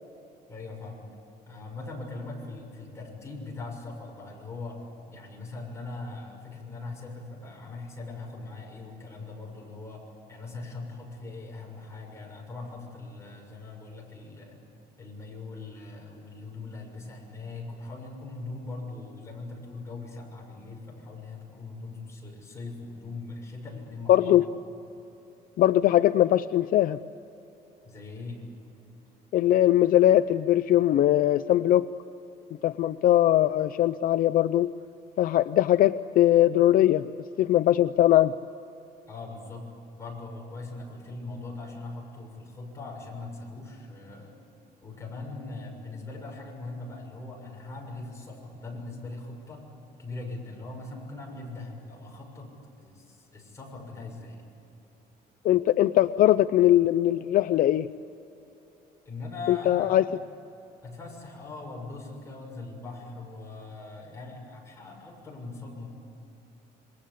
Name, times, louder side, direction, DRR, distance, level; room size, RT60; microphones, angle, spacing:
voice 1, 0.5-1.1 1.5-10.0 10.3-14.6 15.0-24.4 27.8-28.4 39.1-39.7 39.9-44.3 44.8-49.6 50.0-52.5 52.8-54.4 59.0-60.0 60.8-65.9, left 3 dB, 15° left, -1 dB, 6.7 m, -40 dB
voice 2, 24.1-24.4 25.6-27.0 29.3-31.9 32.6-34.7 35.2-37.1 37.4-38.3 55.4-57.9 59.5-60.0, left 13 dB, 60° left, 11 dB, 0.5 m, -21 dB
27.5 x 22.5 x 8.6 m, 2.9 s
cardioid pair, 145°, 17 cm